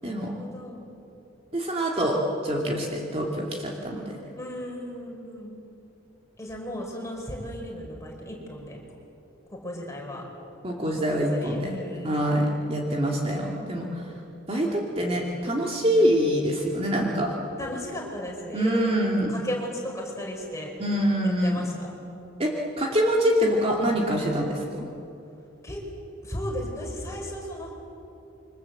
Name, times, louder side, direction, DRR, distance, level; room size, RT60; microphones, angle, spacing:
voice 1, 0.0-0.9 1.9-2.1 2.5-2.7 4.3-5.5 6.4-8.8 9.6-10.2 11.1-12.4 12.9-13.5 17.6-18.9 19.3-20.7 21.2-21.9 25.6-25.8 26.2-27.7, equal, 15° left, -1 dB, 5.2 m, -35 dB
voice 2, 1.5-4.1 10.6-11.8 12.0-14.0 14.5-17.3 18.5-19.4 20.8-21.7 22.4-22.5 22.8-24.9, equal, 30° right, -1 dB, 2.5 m, -25 dB
27.5 x 24.5 x 7.9 m, 2.8 s
head